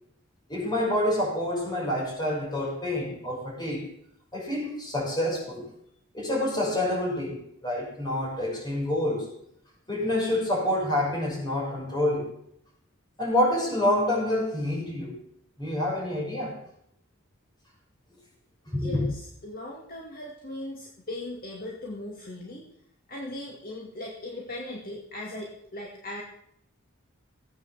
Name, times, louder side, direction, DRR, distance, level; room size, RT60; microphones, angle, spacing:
voice 1, 0.5-3.8 4.3-5.7 6.1-9.3 9.9-12.3 13.2-15.2 15.6-16.6 18.7-19.0, left 1 dB, 20° left, -2 dB, 6.2 m, -27 dB
voice 2, 18.8-22.7 23.1-26.2, left 1 dB, 45° left, -2 dB, 2.4 m, -38 dB
16.5 x 9.1 x 7.2 m, 0.71 s
head